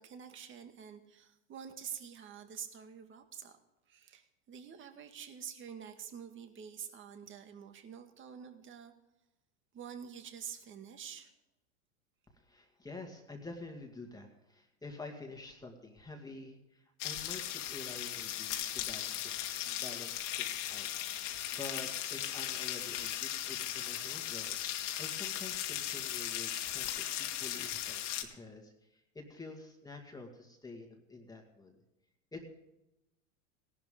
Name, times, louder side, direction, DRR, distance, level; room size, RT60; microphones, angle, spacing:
voice 1, 0.0-3.6 3.9-8.9 9.7-11.3, right 8 dB, 30° right, 6 dB, 2.1 m, -47 dB
voice 2, 12.3-20.9 21.2-24.6 25.0-31.8 32.3-32.4, left 3 dB, 10° left, 2 dB, 2.2 m, -48 dB
sound 1, 17.0-28.2, left 12 dB, 65° left, 2.3 m, -37 dB
18.0 x 12.0 x 3.8 m, 0.91 s
hypercardioid pair, 110°, 39 cm